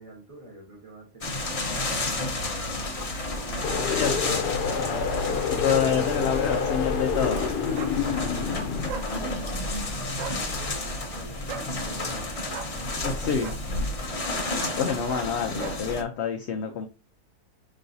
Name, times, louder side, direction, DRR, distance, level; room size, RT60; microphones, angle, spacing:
voice 1, 0.0-2.1 5.7-5.8 7.3-8.7 8.9-11.6 13.8-14.6, right 1 dB, 25° right, -4 dB, 1.1 m, -48 dB
sound 1, 1.2-16.0, left 2 dB, 35° left, 0.6 m, -31 dB
sound 2, 3.6-8.9, left 6 dB, 90° left, 1.2 m, -28 dB
voice 2, 5.5-7.5 13.0-13.6 14.6-16.8, left 7 dB, 70° left, 4 dB, 0.6 m, -27 dB
sound 3, 7.7-8.0 8.9-9.1 10.1-10.4 11.5-11.7 12.5-12.7 13.4-13.6 14.6-14.8 15.1-15.3 15.6-15.8, right 7 dB, 65° right, 0.8 m, -37 dB
5.5 x 3.1 x 2.6 m, 0.33 s
omnidirectional pair, 1.7 m